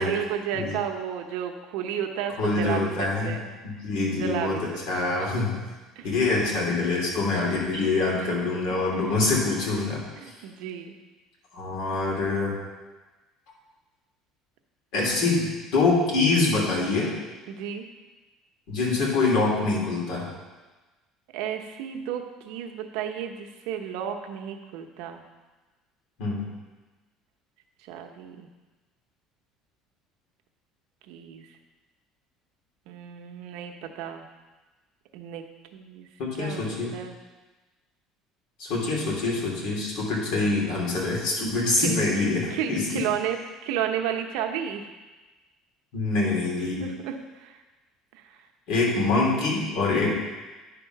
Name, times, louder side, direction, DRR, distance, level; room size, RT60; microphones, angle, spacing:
voice 1, 0.0-3.5 4.1-4.6 5.0-5.5 6.0-6.2 6.9-7.0 7.8-8.8 10.2-11.0 17.5-17.8 21.3-25.2 27.9-28.5 31.1-31.5 32.9-34.3 35.1-35.4 35.7-36.1 36.4-36.6 36.9-37.2 41.8-42.0 42.5-44.9 46.8-47.6 48.1-48.4, right 9 dB, 80° right, 4 dB, 0.8 m, -33 dB
voice 2, 2.4-3.4 3.6-4.6 4.9-5.6 6.0-10.0 11.5-12.5 14.9-17.1 18.7-20.3 26.2-26.5 36.2-36.9 38.6-43.0 45.9-46.8 48.7-50.1, left 3 dB, 70° left, -3 dB, 2.8 m, -25 dB
10.0 x 3.7 x 5.8 m, 1.2 s
cardioid pair, 125°, 0 cm